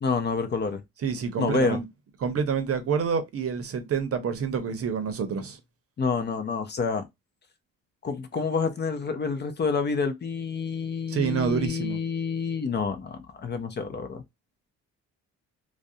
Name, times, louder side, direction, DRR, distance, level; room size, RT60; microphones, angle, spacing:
voice 1, 0.0-0.8 1.4-1.8 6.0-7.1 8.0-14.2, left 5 dB, 35° left, 0.5 m, -28 dB
voice 2, 1.0-1.9 2.2-5.6 11.1-12.0, right 6 dB, 50° right, 0.7 m, -27 dB
2.4 x 2.1 x 2.6 m
cardioid pair, 90°, 30 cm